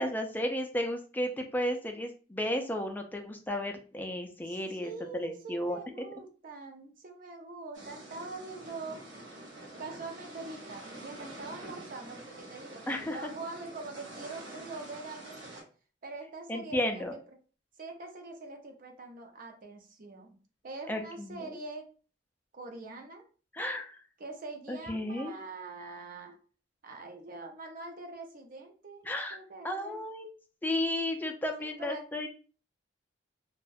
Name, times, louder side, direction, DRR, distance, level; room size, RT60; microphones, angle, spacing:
voice 1, 0.0-5.8 12.9-13.3 16.5-17.1 20.9-21.6 23.5-24.0 24.7-25.3 29.0-29.4 29.6-30.3 30.6-32.3, left 1 dB, 10° left, 4 dB, 0.3 m, -33 dB
voice 2, 4.4-9.0 9.8-15.7 16.0-17.4 17.8-20.4 20.6-21.8 22.5-23.2 24.2-26.4 26.8-29.0 29.3-30.0 31.6-32.0, right 3 dB, 50° right, 3 dB, 0.5 m, -44 dB
sound 1, 7.7-15.6, right 1 dB, 70° right, 0.9 m, -47 dB
2.3 x 2.1 x 2.6 m, 0.37 s
head